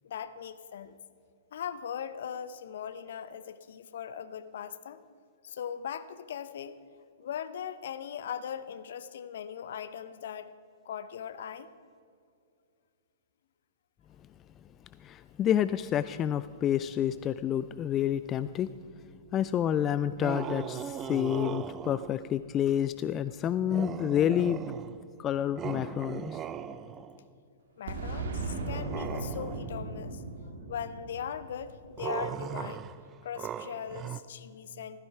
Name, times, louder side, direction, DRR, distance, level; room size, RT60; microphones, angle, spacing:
voice 1, 0.0-1.0 1.5-5.0 5.4-6.8 7.2-10.5 10.8-11.7 27.8-30.2 30.7-32.9 33.2-35.0, left 8 dB, 60° left, 13 dB, 0.8 m, -39 dB
voice 2, 15.0-18.7 19.3-24.6 25.2-26.4, left 10 dB, 25° left, 14 dB, 0.3 m, -29 dB
sound 1, 20.2-22.2 23.7-25.1 25.6-27.2 28.7-29.8 32.0-34.2, right 8 dB, 25° right, 0.5 m, -38 dB
Boom, 27.9-32.5, right 3 dB, 60° right, 1.9 m, -37 dB
16.0 x 14.0 x 4.7 m, 2.4 s
figure-of-eight pair, 110°, 0 cm